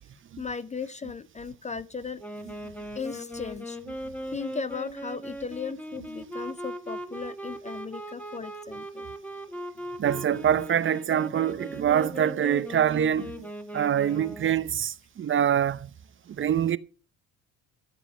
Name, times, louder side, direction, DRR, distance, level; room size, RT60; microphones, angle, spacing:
voice 1, 0.4-2.2 3.0-3.8 4.3-9.1, left 5 dB, 20° left, 0.5 m, -36 dB
Wind instrument woodwind instrument, 2.2-14.6, equal, 5° left, 1.5 m, -39 dB
voice 2, 10.0-13.5 13.7-15.9 16.4-16.8, right 9 dB, 35° right, 0.7 m, -25 dB
13.5 x 7.9 x 6.2 m
cardioid pair, 120°, 34 cm